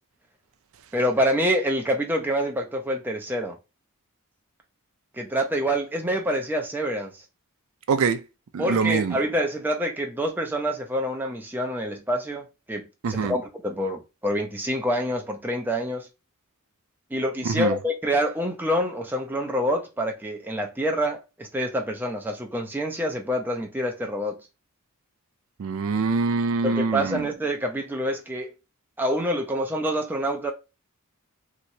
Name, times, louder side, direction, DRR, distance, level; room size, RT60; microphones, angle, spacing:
voice 1, 0.9-3.6 5.1-7.1 8.6-16.1 17.1-24.4 26.6-28.5 29.0-30.5, equal, 10° right, 0.5 m, -26 dB
voice 2, 7.9-8.2 8.5-9.2 13.0-13.3 17.4-17.8 25.6-27.3, right 4 dB, 65° right, 0.4 m, -24 dB
2.9 x 2.9 x 2.6 m
head